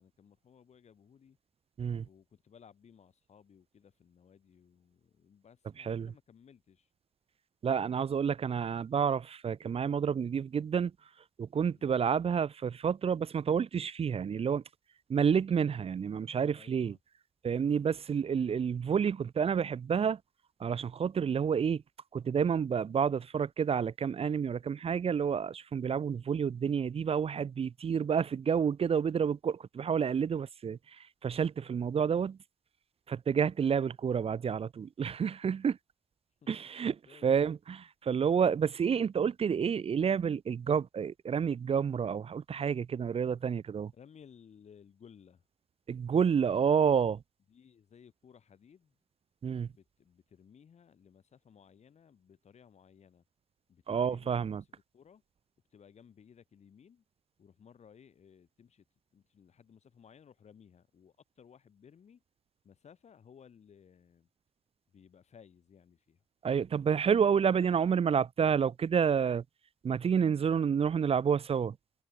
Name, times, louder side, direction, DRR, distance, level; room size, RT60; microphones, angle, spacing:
voice 1, 0.0-1.4 2.0-6.9 11.7-12.0 16.5-17.0 37.1-37.4 43.9-45.4 47.5-48.9 49.6-53.2 53.7-54.7 54.9-55.2 55.7-57.0 57.4-58.8 59.1-62.2 62.6-64.3 64.9-66.2 67.5-67.7, left 7 dB, 70° left, 7.8 m, -59 dB
voice 2, 5.8-6.1 7.6-10.9 11.4-14.6 15.1-16.9 17.4-20.2 20.6-21.8 22.1-30.8 31.2-32.4 33.1-35.8 36.5-37.0 37.2-43.9 45.9-47.2 49.4-49.7 53.9-54.6 66.4-69.4 69.8-71.7, right 7 dB, 55° right, 0.6 m, -29 dB
supercardioid pair, 40°, 12 cm